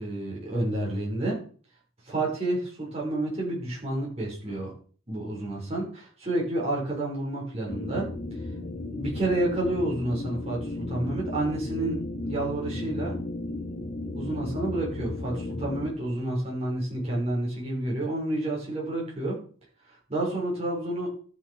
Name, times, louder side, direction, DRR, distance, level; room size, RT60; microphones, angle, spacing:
voice 1, 0.0-1.4 2.0-4.7 5.1-8.1 9.0-12.0 12.2-13.2 14.1-19.4 19.9-21.2, right 1 dB, 30° right, -4 dB, 5.9 m, -29 dB
sound 1, 7.7-15.9, left 2 dB, 30° left, 1.4 m, -34 dB
13.0 x 6.8 x 5.0 m, 0.43 s
head